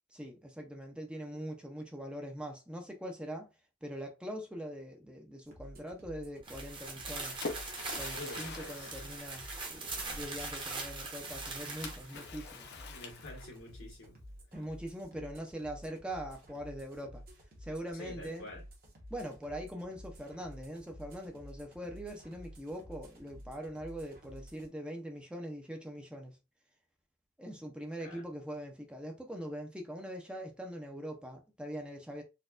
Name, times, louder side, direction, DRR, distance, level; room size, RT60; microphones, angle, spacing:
voice 1, 0.1-3.5 3.8-7.4 7.9-12.7 14.5-17.2 17.6-18.5 19.1-26.4 27.4-32.2, equal, 5° right, 0.5 m, -42 dB
sound 1, 5.4-24.7, equal, 50° right, 1.1 m, -52 dB
sound 2, 6.4-12.3, right 3 dB, 25° right, 0.9 m, -41 dB
Splash splatter, 6.9-10.0 11.8-13.8, left 4 dB, 55° left, 0.7 m, -45 dB
voice 2, 8.1-9.0 12.7-14.2 17.9-18.6 28.0-28.2, left 1 dB, 90° left, 1.4 m, -47 dB
4.2 x 2.3 x 2.4 m
head